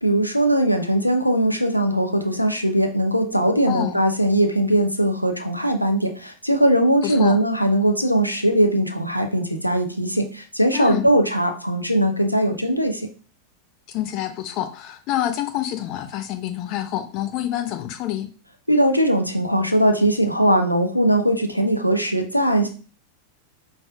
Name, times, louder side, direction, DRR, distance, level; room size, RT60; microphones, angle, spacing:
voice 1, 0.0-13.1 18.7-22.7, right 1 dB, 90° left, 5 dB, 0.5 m, -20 dB
voice 2, 3.7-4.0 7.0-7.4 10.7-11.1 13.9-18.3, left 12 dB, 40° left, 6 dB, 0.6 m, -27 dB
5.3 x 3.3 x 2.3 m, 0.37 s
figure-of-eight pair, 90°, 0 cm